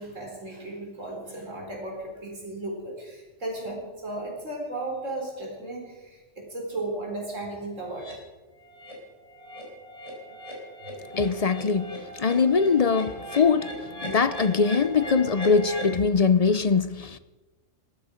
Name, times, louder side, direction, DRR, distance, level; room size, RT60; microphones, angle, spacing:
voice 1, 0.0-8.1, right 2 dB, 85° right, 4.3 m, -35 dB
sound 1, 8.0-8.1 8.6-8.9 9.3-16.0, equal, 25° left, 4.5 m, -38 dB
voice 2, 11.1-13.7 14.0-17.2, left 5 dB, 45° left, 0.5 m, -22 dB
20.5 x 13.0 x 5.1 m
omnidirectional pair, 1.3 m